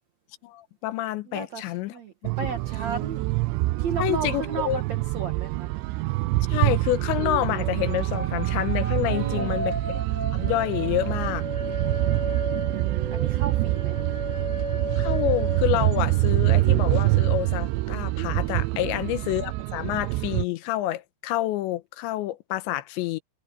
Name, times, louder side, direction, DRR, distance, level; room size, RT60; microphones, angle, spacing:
voice 1, 0.4-1.9 4.0-4.8 6.5-9.7 10.3-11.4 15.0-23.2, left 15 dB, 90° left, 3.1 m, -28 dB
voice 2, 1.3-3.3 3.8-5.7 9.1-9.6 11.6-12.6 13.1-14.0 18.8-19.1, right 6 dB, 60° right, 1.8 m, -35 dB
sound 1, 2.2-20.4, right 20 dB, 85° right, 2.8 m, -26 dB
sound 2, 7.1-16.3 16.6-16.8, equal, 10° left, 7.7 m, -35 dB
omnidirectional pair, 5.2 m